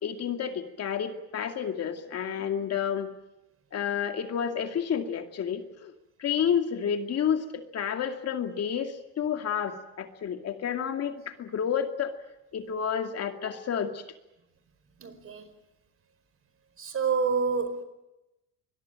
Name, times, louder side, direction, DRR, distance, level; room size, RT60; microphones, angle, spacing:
voice 1, 0.0-3.1 3.7-5.9 6.2-12.1 12.5-14.0, left 8 dB, 45° left, 2.4 m, -30 dB
voice 2, 15.0-15.5 16.8-17.8, right 5 dB, 40° right, 4.7 m, -28 dB
25.5 x 21.0 x 8.9 m
cardioid pair, 110°, 34 cm